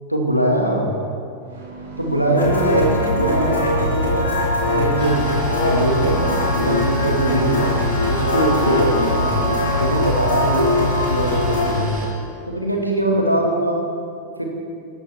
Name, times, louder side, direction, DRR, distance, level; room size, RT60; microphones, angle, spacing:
voice 1, 0.1-0.9 2.0-3.5 3.8-4.3 4.6-5.2 5.6-7.5 8.1-9.3 9.7-12.0 12.5-13.8 14.4-14.5, right 1 dB, 90° right, 0 dB, 1.8 m, -21 dB
sound 1, 1.4-10.5, right 3 dB, 65° right, 3.6 m, -35 dB
sound 2, 2.4-11.7, left 2 dB, 75° left, 3.6 m, -21 dB
sound 3, 5.0-12.1, right 1 dB, 35° right, 3.8 m, -34 dB
15.5 x 13.0 x 3.4 m, 2.4 s
figure-of-eight pair, 90°, 0 cm